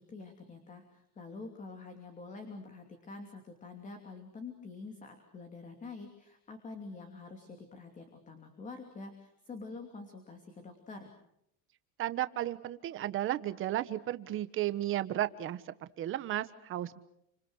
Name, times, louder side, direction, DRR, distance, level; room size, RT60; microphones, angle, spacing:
voice 1, 0.0-11.1, left 3 dB, 15° left, 5 dB, 2.9 m, -47 dB
voice 2, 12.0-15.6 16.0-17.0, right 13 dB, 30° right, 12 dB, 1.3 m, -34 dB
29.5 x 27.0 x 6.4 m, 0.76 s
cardioid pair, 175°, 43 cm